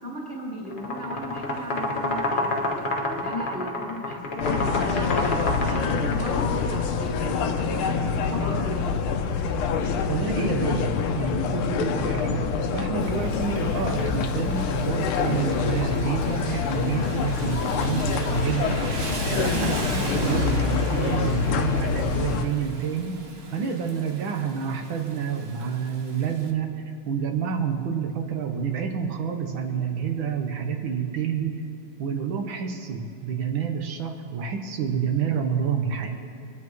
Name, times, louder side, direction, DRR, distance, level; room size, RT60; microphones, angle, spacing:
voice 1, 0.0-5.1 5.6-9.0, equal, 15° left, -6 dB, 2.6 m, -35 dB
sound 1, 0.7-6.5, left 2 dB, 35° left, 0.8 m, -28 dB
sound 2, 4.4-22.5, left 6 dB, 85° left, 1.6 m, -26 dB
voice 2, 10.1-18.8 19.3-23.2 23.5-31.6 32.0-36.1, right 7 dB, 70° right, 4 dB, 1.8 m, -28 dB
Rain, 13.0-26.5, right 3 dB, 40° right, 0.9 m, -38 dB
25.5 x 9.6 x 3.1 m, 2.5 s
omnidirectional pair, 2.3 m